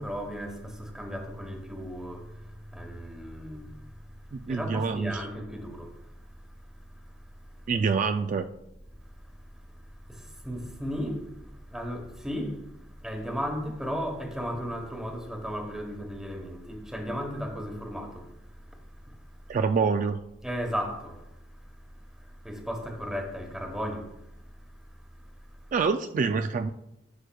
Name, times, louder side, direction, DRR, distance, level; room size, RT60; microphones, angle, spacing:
voice 1, 0.0-2.2 2.7-3.7 4.5-5.9 10.4-11.2 11.7-12.6 13.0-18.2 20.4-21.2 22.4-24.0, equal, 5° right, 1.1 m, -34 dB
voice 2, 4.3-5.3 7.7-8.4 19.5-20.2 25.7-26.7, right 5 dB, 45° right, 0.3 m, -26 dB
11.5 x 6.4 x 2.3 m
head